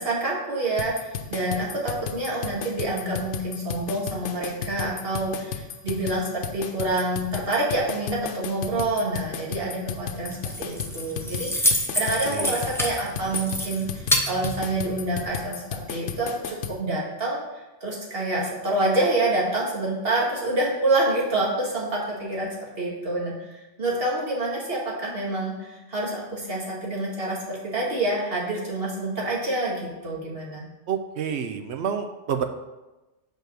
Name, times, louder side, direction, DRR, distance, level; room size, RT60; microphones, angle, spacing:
voice 1, 0.0-30.7, right 2 dB, 55° right, -4 dB, 2.0 m, -27 dB
sound 1, 0.8-16.8, left 8 dB, 80° left, 1.0 m, -34 dB
Keys jangling, 10.2-15.3, left 1 dB, 5° left, 0.6 m, -28 dB
voice 2, 12.3-12.6 30.9-32.4, right 7 dB, 70° right, 7 dB, 0.9 m, -28 dB
5.3 x 4.8 x 6.0 m, 1.1 s
omnidirectional pair, 1.2 m